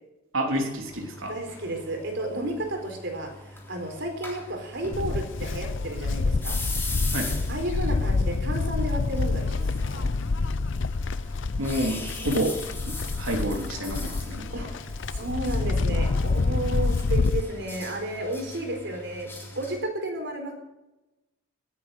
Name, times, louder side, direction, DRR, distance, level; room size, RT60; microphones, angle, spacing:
voice 1, 0.3-1.3 7.1-7.4 11.6-12.6 12.9-14.7, right 1 dB, 85° right, 1 dB, 3.5 m, -29 dB
sound 1, 0.8-19.8, left 2 dB, 10° left, 3.4 m, -41 dB
voice 2, 1.3-6.6 7.5-10.1 14.5-20.5, right 1 dB, 60° right, 3 dB, 4.3 m, -32 dB
Livestock farm animals working animals, 4.9-17.4, left 3 dB, 65° left, 0.6 m, -27 dB
18.5 x 9.3 x 6.5 m, 0.96 s
head